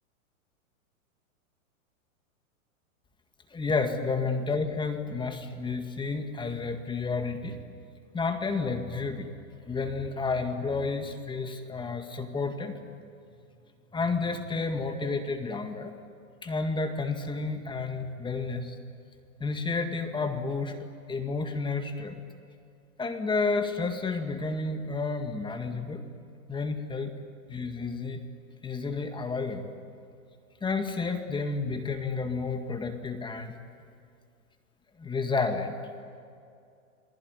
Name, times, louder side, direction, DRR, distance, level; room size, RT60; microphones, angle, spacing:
voice 1, 3.5-7.6 8.1-9.3 9.7-12.7 13.9-15.9 16.4-18.7 19.4-20.7 21.1-22.2 23.0-26.0 26.5-27.1 27.5-28.2 28.6-29.7 30.6-33.5 35.0-35.7, left 4 dB, 10° left, 6 dB, 1.9 m, -31 dB
30.0 x 19.5 x 9.7 m, 2.4 s
hypercardioid pair, 130°, 42 cm